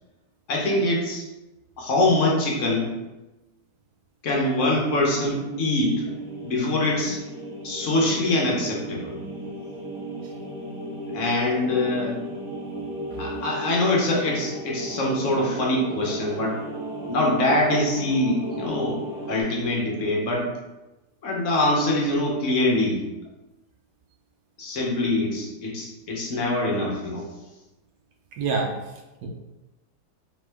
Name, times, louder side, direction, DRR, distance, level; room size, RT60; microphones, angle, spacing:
voice 1, 0.5-1.2 1.8-2.9 4.2-6.0 6.4-7.2 7.6-9.1 11.1-12.2 13.2-16.6 17.1-19.0 19.3-20.5 21.2-23.0 24.6-27.3, left 1 dB, 55° left, -2 dB, 1.0 m, -24 dB
sound 1, 4.3-19.4, right 1 dB, 5° right, 0.3 m, -35 dB
voice 2, 13.5-13.9 18.5-18.6 28.4-28.7 29.2-29.3, right 4 dB, 70° right, 1 dB, 1.1 m, -29 dB
3.7 x 3.2 x 3.3 m, 1.0 s
omnidirectional pair, 1.9 m